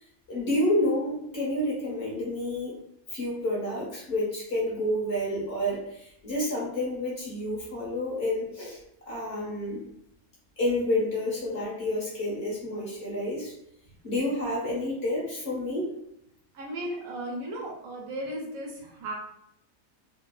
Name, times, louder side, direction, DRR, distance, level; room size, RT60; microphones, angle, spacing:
voice 1, 0.3-2.8 3.1-8.8 9.1-9.8 10.6-13.5 14.0-15.9, left 1 dB, 55° left, -5 dB, 0.9 m, -29 dB
voice 2, 16.5-19.1, right 1 dB, 75° right, -2 dB, 1.0 m, -35 dB
2.7 x 2.3 x 2.2 m, 0.76 s
omnidirectional pair, 1.5 m